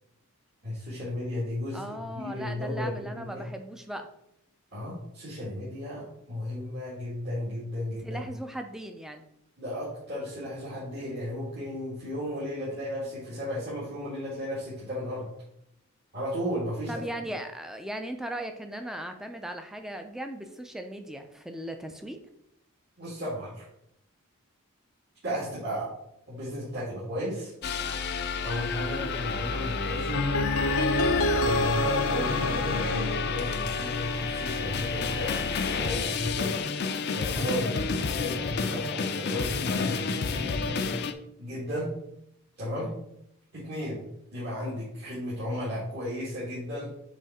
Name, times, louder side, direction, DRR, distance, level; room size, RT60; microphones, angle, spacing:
voice 1, 0.6-3.5 4.7-8.2 9.6-15.3 16.1-17.0 23.0-23.7 25.2-25.9 26.3-27.5 28.4-30.2 31.4-35.4 35.7-36.6 37.1-40.9 41.4-41.9 42.6-42.9 43.5-44.0 44.3-46.9, left 1 dB, 50° right, -8 dB, 1.9 m, -34 dB
voice 2, 1.7-4.1 8.0-9.2 16.9-22.2 25.3-25.5 37.7-37.9 42.8-43.0, right 1 dB, ahead, 5 dB, 0.5 m, -38 dB
sound 1, 27.6-41.1, left 5 dB, 50° left, 0.5 m, -30 dB
sound 2, 30.1-34.2, left 2 dB, 85° left, 0.8 m, -27 dB
7.3 x 3.3 x 4.2 m, 0.76 s
head